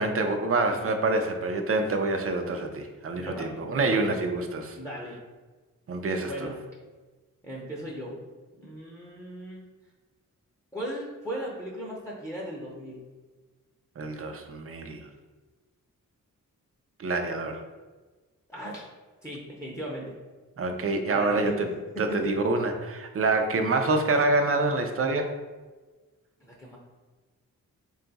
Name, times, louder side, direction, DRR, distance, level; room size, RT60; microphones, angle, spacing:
voice 1, 0.0-4.8 5.9-6.5 14.0-15.0 17.0-17.6 20.6-21.7 22.0-25.3, right 2 dB, 45° right, 5 dB, 0.5 m, -26 dB
voice 2, 3.1-4.2 4.8-5.2 6.3-6.6 7.4-8.2 8.6-9.6 10.7-13.0 18.5-18.9 19.2-20.1 21.1-21.6 21.9-22.3 26.4-26.8, equal, 10° left, -4 dB, 0.7 m, -37 dB
3.7 x 2.4 x 3.9 m, 1.3 s
cardioid pair, 70°, 33 cm